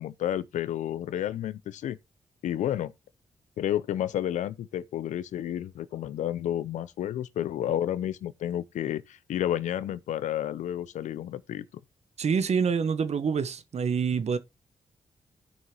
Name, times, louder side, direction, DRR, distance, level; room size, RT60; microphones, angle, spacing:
voice 1, 0.0-2.0 2.4-2.9 3.6-11.6, left 11 dB, 85° left, 0.7 m, -31 dB
voice 2, 12.2-14.4, right 6 dB, 65° right, 1.2 m, -26 dB
16.0 x 5.6 x 3.0 m
supercardioid pair, 50°, 12 cm